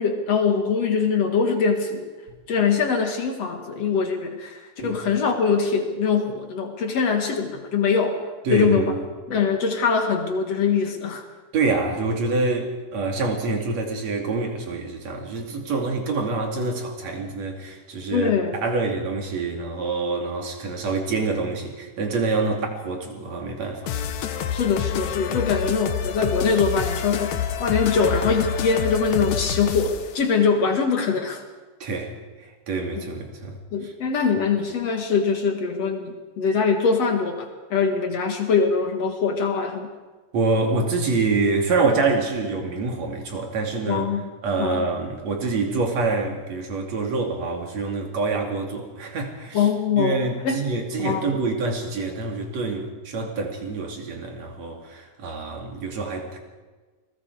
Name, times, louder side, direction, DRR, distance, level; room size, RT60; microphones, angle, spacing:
voice 1, 0.0-2.1 2.5-8.2 8.5-8.9 9.3-11.2 18.1-18.6 24.5-27.3 27.6-31.4 33.7-39.9 43.8-44.3 44.6-44.9 49.5-50.2 50.4-50.6 51.0-51.3, left 5 dB, 50° left, 4 dB, 2.0 m, -23 dB
voice 2, 8.4-9.0 11.5-18.3 18.6-23.9 31.8-32.1 32.4-33.9 40.3-44.0 44.4-49.7 50.0-56.4, right 3 dB, 45° right, 2 dB, 3.3 m, -26 dB
sound 1, 23.9-30.1, left 8 dB, 90° left, 1.5 m, -28 dB
29.0 x 20.5 x 4.9 m, 1.3 s
omnidirectional pair, 5.0 m